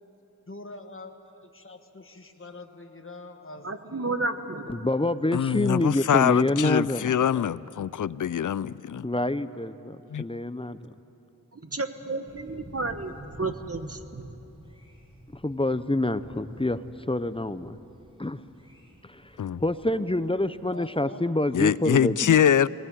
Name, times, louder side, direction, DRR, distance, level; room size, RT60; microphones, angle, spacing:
voice 1, 0.5-4.1 19.5-21.2, left 2 dB, 35° left, 5 dB, 1.5 m, -45 dB
voice 2, 3.6-4.8 11.5-14.4, right 3 dB, 45° right, 8 dB, 1.3 m, -32 dB
voice 3, 4.7-7.6 9.0-10.8 15.3-16.8 17.1-17.8 18.2-18.4 19.0-19.3 19.6-22.4, left 1 dB, 15° left, 13 dB, 0.7 m, -27 dB
voice 4, 5.3-9.1 10.1-10.2 19.4-19.6 21.5-22.7, left 9 dB, 65° left, 19 dB, 0.5 m, -24 dB
Thunder, 12.3-20.7, equal, 15° right, 6.6 m, -52 dB
19.0 x 19.0 x 9.3 m, 3.0 s
wide cardioid pair, 45°, 34 cm